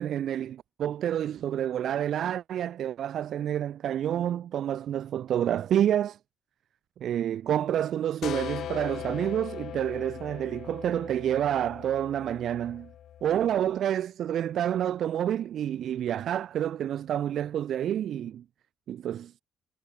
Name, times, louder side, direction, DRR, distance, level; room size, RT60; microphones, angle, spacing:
voice 1, 0.0-6.2 7.0-12.9 13.2-18.4 18.9-19.3, right 10 dB, 65° right, 0.6 m, -28 dB
sound 1, 8.2-13.7, left 10 dB, 65° left, 1.4 m, -40 dB
cardioid pair, 100°, 0 cm